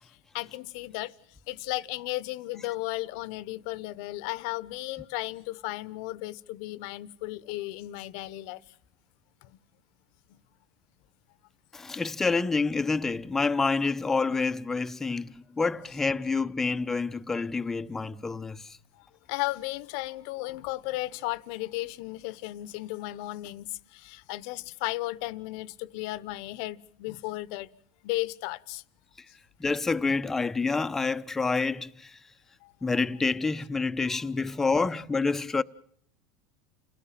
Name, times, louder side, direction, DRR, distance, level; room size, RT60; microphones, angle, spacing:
voice 1, 0.3-1.1 1.5-8.6 19.3-27.7 28.0-28.8 32.6-32.7 34.7-34.8, left 18 dB, 65° left, 1.0 m, -35 dB
voice 2, 11.7-18.8 29.6-32.2 32.8-35.6, left 4 dB, 15° left, 1.0 m, -28 dB
29.5 x 18.0 x 7.6 m
supercardioid pair, 115°, 3 cm